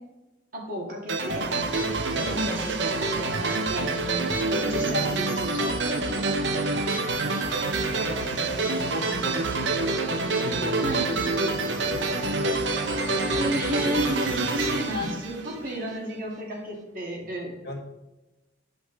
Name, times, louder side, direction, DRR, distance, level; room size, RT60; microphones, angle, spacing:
voice 1, 0.5-1.5 2.1-3.9 4.6-7.0 10.8-11.0 13.3-17.5, equal, 50° right, -1 dB, 2.2 m, -32 dB
sound 1, 1.1-15.9, right 3 dB, 70° right, 0.8 m, -27 dB
voice 2, 1.7-2.1 4.1-4.6 7.8-11.0 11.4-12.3 17.6-17.8, left 1 dB, 60° left, 0 dB, 1.6 m, -41 dB
11.5 x 5.2 x 4.0 m, 1.0 s
head